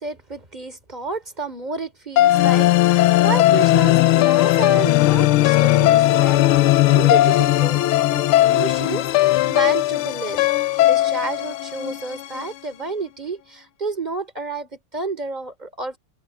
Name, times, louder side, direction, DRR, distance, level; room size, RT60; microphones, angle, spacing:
voice 1, 0.0-7.8 8.2-10.4 10.8-16.0, right 4 dB, 20° right, 4.1 m, -30 dB
sound 1, 2.2-12.4, left 15 dB, 75° left, 1.6 m, -17 dB
open air
omnidirectional pair, 2.4 m